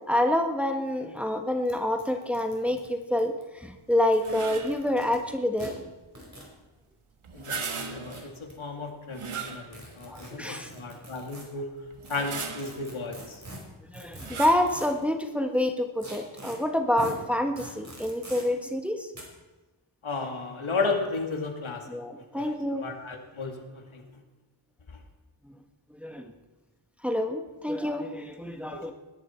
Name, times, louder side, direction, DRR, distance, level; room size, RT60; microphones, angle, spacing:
voice 1, 0.1-5.8 7.5-7.6 10.1-10.7 13.9-19.1 21.9-22.9 25.9-26.3 27.0-28.9, left 1 dB, 5° right, 4 dB, 1.4 m, -27 dB
sound 1, 0.9-1.0 1.2-1.3 1.7-1.8 2.0-3.4 4.0-5.2 5.6-5.7 6.1-6.5 7.6-8.5 9.7-11.4 12.1-15.0 16.0-16.6 17.0-17.1 17.6-18.4 19.1-19.2, right 1 dB, 35° right, 5.2 m, -44 dB
sound 2, 4.2-4.9 7.2-8.3 9.1-10.0 10.6-10.7 11.9-12.9 14.2-14.8, right 6 dB, 75° right, 1.7 m, -37 dB
voice 2, 7.3-11.8 12.1-13.4 20.0-21.9 22.3-22.5 22.8-24.2 24.9-25.0 28.7-28.8, left 3 dB, 70° left, 3 dB, 2.5 m, -34 dB
20.0 x 11.5 x 4.5 m, 1.1 s
wide cardioid pair, 70°, 50 cm